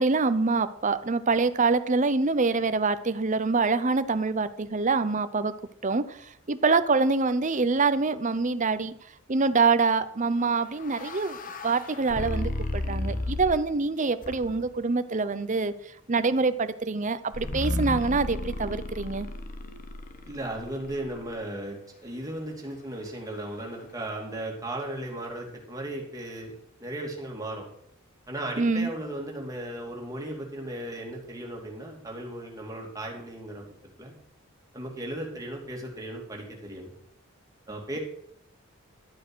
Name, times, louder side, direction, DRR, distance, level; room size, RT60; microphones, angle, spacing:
voice 1, 0.0-5.5 5.8-6.2 6.5-8.9 9.3-11.4 11.6-15.7 16.1-19.3 28.6-28.9, right 4 dB, 35° right, 13 dB, 0.7 m, -25 dB
sound 1, 10.4-13.8 14.2-14.8 17.3-21.4, left 1 dB, 40° left, 0.9 m, -34 dB
voice 2, 20.2-27.7 28.3-33.7 34.0-34.1 34.7-36.9 37.7-38.0, right 1 dB, 15° right, -1 dB, 2.8 m, -36 dB
12.5 x 7.7 x 6.2 m, 0.70 s
head